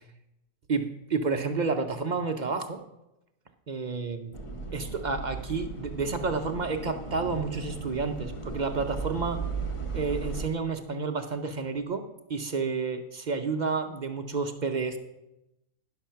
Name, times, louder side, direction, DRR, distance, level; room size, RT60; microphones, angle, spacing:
voice 1, 0.7-2.8 3.7-4.4 4.7-9.4 9.9-15.0, right 4 dB, 55° right, 5 dB, 0.5 m, -30 dB
sound 1, 4.3-10.5, right 4 dB, 30° left, 0.6 m, -36 dB
10.5 x 6.2 x 5.6 m, 0.90 s
omnidirectional pair, 1.5 m